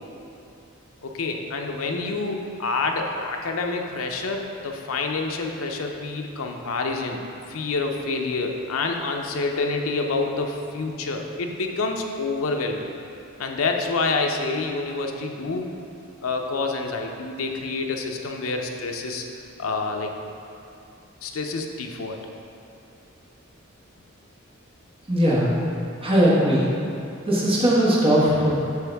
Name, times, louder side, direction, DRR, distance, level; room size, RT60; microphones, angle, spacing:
voice 1, 1.0-7.2 7.5-12.9 13.4-15.7 16.2-19.2 19.6-20.1 21.2-22.2, left 3 dB, 75° left, 2 dB, 0.6 m, -27 dB
voice 2, 25.1-25.5 26.0-26.7 27.3-28.5, equal, 25° right, -6 dB, 1.2 m, -19 dB
8.0 x 4.7 x 3.4 m, 2.6 s
head